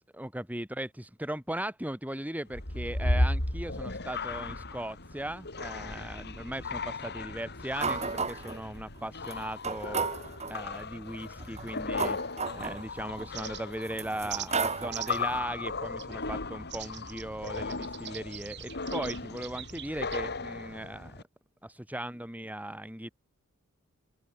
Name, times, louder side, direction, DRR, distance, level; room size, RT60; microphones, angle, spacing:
voice 1, 0.0-10.1 10.5-21.3 21.6-23.1, right 1 dB, 5° right, 3.1 m, -38 dB
sound 1, 2.5-21.2, left 2 dB, 50° left, 5.3 m, -36 dB
sound 2, 7.8-8.6 9.3-9.4 9.6-10.6 11.4-13.3 13.9-15.3, right 4 dB, 30° right, 6.8 m, -33 dB
sound 3, 13.3-13.9 14.3-14.5 14.9-15.3 16.0-16.1 16.7-20.3, right 12 dB, 50° right, 3.4 m, -42 dB
head